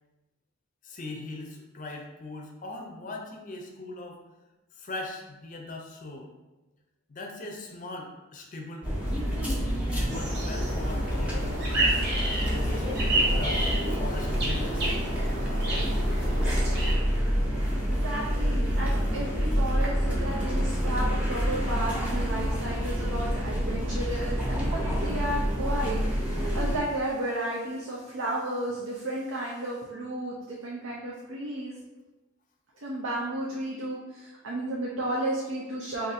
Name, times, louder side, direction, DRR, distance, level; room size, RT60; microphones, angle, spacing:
voice 1, 0.8-4.2 4.8-6.3 7.1-8.9 9.9-12.8 13.2-13.6 13.9-15.0 15.6-16.1, left 2 dB, 40° left, 2 dB, 0.5 m, -40 dB
sound 1, 8.8-26.8, equal, 5° right, 0.6 m, -27 dB
sound 2, 10.1-16.9, right 2 dB, 55° right, 0.9 m, -31 dB
voice 2, 17.7-31.7 32.8-36.1, right 1 dB, 75° right, -3 dB, 0.5 m, -33 dB
2.6 x 2.5 x 4.0 m, 1.1 s
head